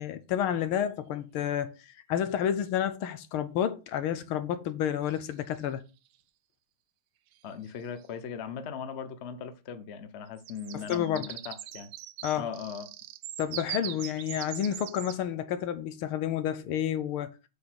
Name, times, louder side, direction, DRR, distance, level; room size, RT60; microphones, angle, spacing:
voice 1, 0.0-5.8 10.7-11.3 12.2-12.4 13.4-17.3, left 10 dB, 80° left, 1.7 m, -30 dB
sound 1, 0.7-0.8 5.1-5.7 7.3-7.4 7.7-8.0 10.3-15.2, right 14 dB, 90° right, 1.6 m, -41 dB
voice 2, 7.4-11.9 12.3-12.9, left 7 dB, 50° left, 0.8 m, -39 dB
8.4 x 4.0 x 6.4 m
omnidirectional pair, 2.3 m